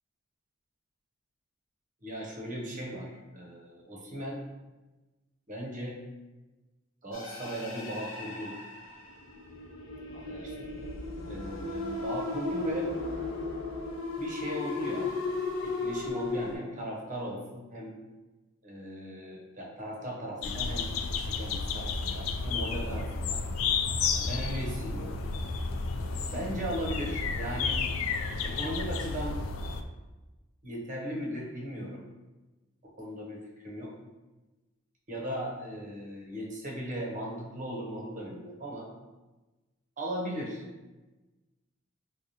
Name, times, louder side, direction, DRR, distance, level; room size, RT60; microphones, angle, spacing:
voice 1, 2.0-4.4 5.5-6.0 7.0-8.6 10.1-10.7 11.3-12.9 14.2-15.1 15.6-18.0 18.6-23.4 24.2-25.2 26.3-27.8 28.4-29.4 30.6-32.0 33.0-33.9 35.1-38.9 40.0-40.6, equal, 40° right, -2 dB, 0.8 m, -37 dB
sound 1, 7.1-16.5, left 3 dB, 70° left, 0.7 m, -35 dB
sound 2, 20.4-29.8, left 4 dB, 85° left, 0.3 m, -32 dB
4.8 x 2.2 x 2.7 m, 1.1 s
head